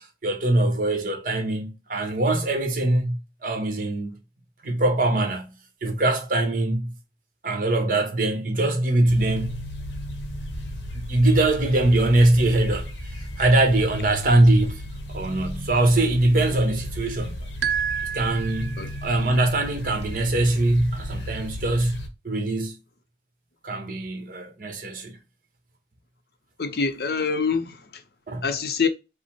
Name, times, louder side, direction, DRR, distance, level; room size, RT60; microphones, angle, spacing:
voice 1, 0.0-3.2 3.4-4.1 4.6-5.5 5.8-6.9 7.4-9.6 10.9-14.8 15.1-17.4 18.1-21.9 22.2-22.8 23.6-25.2 28.3-28.5, right 2 dB, 50° right, 1.2 m, -22 dB
sound 1, 9.1-22.1, equal, 90° left, 1.0 m, -35 dB
sound 2, 17.6-19.2, right 8 dB, 75° right, 0.4 m, -29 dB
voice 2, 26.6-28.0 28.4-28.9, left 5 dB, 60° left, 0.6 m, -25 dB
5.4 x 2.1 x 4.3 m
head